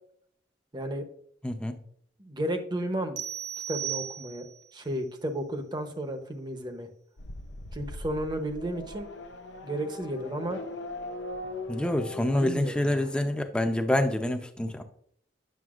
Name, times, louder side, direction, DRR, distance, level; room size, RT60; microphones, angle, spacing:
voice 1, 0.7-1.1 2.2-3.2 3.7-4.4 4.7-6.9 7.7-9.1 9.6-10.6 12.4-13.1, right 1 dB, 25° right, 6 dB, 0.8 m, -33 dB
voice 2, 1.4-1.8 11.7-14.8, left 1 dB, 5° left, 6 dB, 0.6 m, -27 dB
sound 1, 3.2-4.7, right 11 dB, 80° right, 0.7 m, -35 dB
Race car auto racing / Accelerating revving vroom, 7.2-12.4, left 2 dB, 85° left, 0.7 m, -40 dB
9.4 x 6.6 x 2.4 m, 0.63 s
head